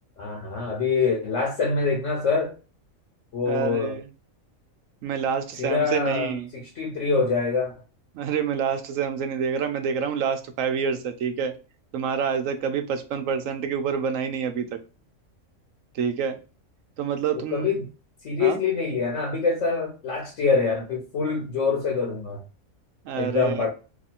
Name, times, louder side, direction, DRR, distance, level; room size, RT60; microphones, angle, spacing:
voice 1, 0.2-2.5 3.3-4.0 5.6-7.7 17.5-17.9 18.2-22.4 23.2-23.7, left 4 dB, 65° left, 1.2 m, -25 dB
voice 2, 3.5-4.0 5.0-6.5 8.1-11.5 11.9-14.8 15.9-16.4 17.0-17.7 18.4-18.6 23.0-23.6, right 7 dB, 75° right, 1.0 m, -27 dB
3.0 x 2.5 x 4.1 m
omnidirectional pair, 1.4 m